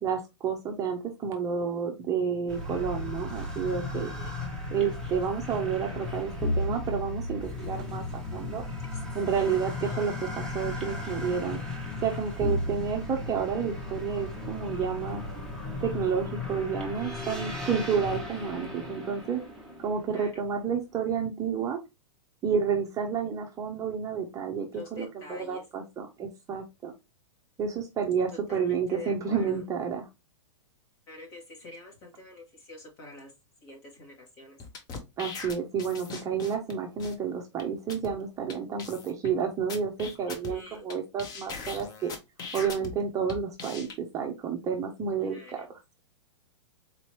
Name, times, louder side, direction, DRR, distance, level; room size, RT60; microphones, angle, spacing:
voice 1, 0.0-4.1 4.7-8.0 8.3-8.6 9.1-11.6 12.0-15.2 15.8-19.4 19.8-21.8 22.4-26.9 27.6-30.0 35.2-42.1 42.5-45.7, right 6 dB, 20° right, 2 dB, 0.7 m, -30 dB
sound 1, 2.5-20.4, left 2 dB, 5° left, 1.1 m, -35 dB
voice 2, 9.4-10.2 11.5-11.7 17.2-17.6 20.1-20.4 24.7-25.6 28.3-29.6 31.1-33.3 33.6-34.6 40.3-40.9 45.2-45.7, left 2 dB, 40° left, 0 dB, 2.1 m, -46 dB
sound 2, 34.6-36.7 37.0-37.1 37.6-37.7 37.9-38.1 38.5-38.6 38.8-39.3 39.7-40.9 41.2-42.9 43.3-43.9, left 4 dB, 25° left, 0.8 m, -40 dB
4.0 x 3.0 x 3.0 m, 0.23 s
hypercardioid pair, 135°, 15 cm